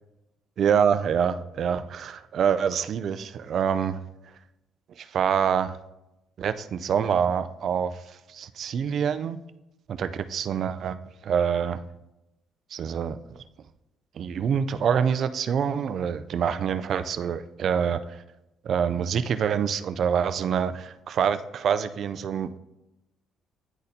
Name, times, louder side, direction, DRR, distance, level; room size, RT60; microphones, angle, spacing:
voice 1, 0.6-4.0 5.0-5.8 6.4-7.9 8.3-9.4 9.9-11.0 11.2-11.8 12.7-13.2 14.2-18.2 18.6-22.6, right 7 dB, 60° right, 0.4 m, -26 dB
9.9 x 4.0 x 2.7 m
cardioid pair, 95°, 0 cm